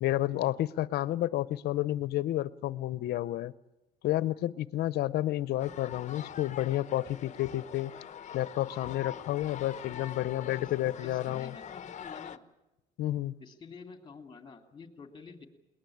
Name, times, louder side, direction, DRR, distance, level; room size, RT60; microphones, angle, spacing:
voice 1, 0.0-3.5 4.0-7.9 8.3-11.5 13.0-13.4, left 14 dB, 70° left, 18 dB, 0.8 m, -30 dB
sound 1, 5.6-12.4, left 9 dB, 45° left, 1.0 m, -44 dB
voice 2, 11.0-12.4 13.4-15.5, left 5 dB, 25° left, 6 dB, 3.0 m, -49 dB
21.5 x 19.5 x 8.7 m, 0.98 s
cardioid pair, 110°, 17 cm